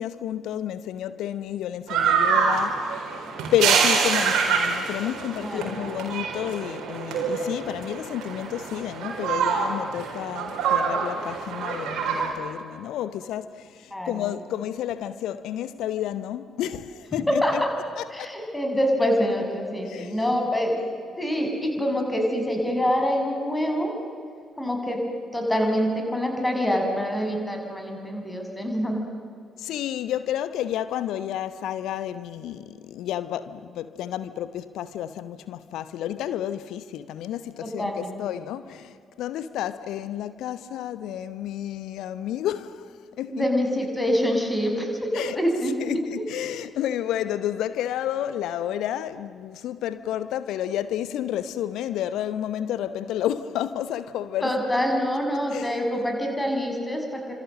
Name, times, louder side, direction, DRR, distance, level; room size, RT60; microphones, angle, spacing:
voice 1, 0.0-3.2 3.5-17.6 18.0-18.3 19.8-20.2 29.6-43.4 45.1-45.4 45.8-54.5 55.5-55.8, left 11 dB, 60° left, 1.0 m, -31 dB
sound 1, 1.9-12.3, right 6 dB, 60° right, 4.3 m, -26 dB
voice 2, 5.4-5.8 13.9-14.4 17.3-17.7 18.1-20.8 21.2-24.0 24.6-25.0 25.3-29.0 37.6-38.1 43.3-44.9 45.4-45.7 54.4-57.3, equal, 15° left, 6.3 m, -25 dB
29.5 x 26.0 x 7.6 m
figure-of-eight pair, 40°, 0 cm